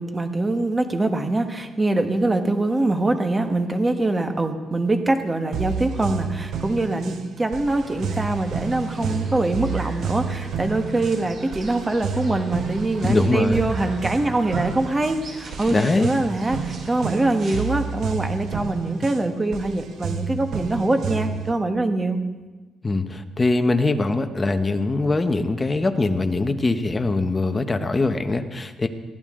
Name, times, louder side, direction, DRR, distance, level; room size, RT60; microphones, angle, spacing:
voice 1, 0.0-22.2, right 2 dB, 15° right, 6 dB, 1.4 m, -23 dB
sound 1, 5.5-21.5, right 6 dB, 70° right, 1.3 m, -30 dB
sound 2, 7.6-17.7, right 2 dB, 50° right, 4.3 m, -41 dB
voice 2, 13.0-13.7 15.7-16.1 22.8-28.9, left 2 dB, 20° left, 7 dB, 1.1 m, -22 dB
21.5 x 16.0 x 3.8 m, 1.3 s
cardioid pair, 140°, 0 cm